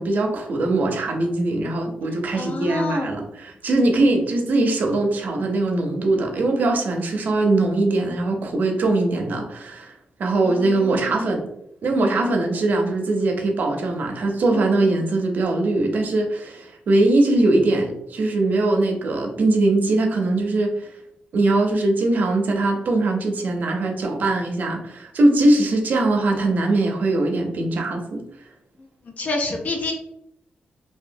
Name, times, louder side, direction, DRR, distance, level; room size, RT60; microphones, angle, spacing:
voice 1, 0.0-9.9 10.2-11.5 11.8-20.9 21.3-28.2, right 2 dB, 65° right, 3 dB, 0.5 m, -21 dB
voice 2, 2.3-3.1 10.4-11.4 14.5-14.9 29.2-29.9, left 2 dB, 50° left, 2 dB, 0.6 m, -28 dB
2.8 x 2.2 x 2.5 m, 0.77 s
wide cardioid pair, 125°, 3 cm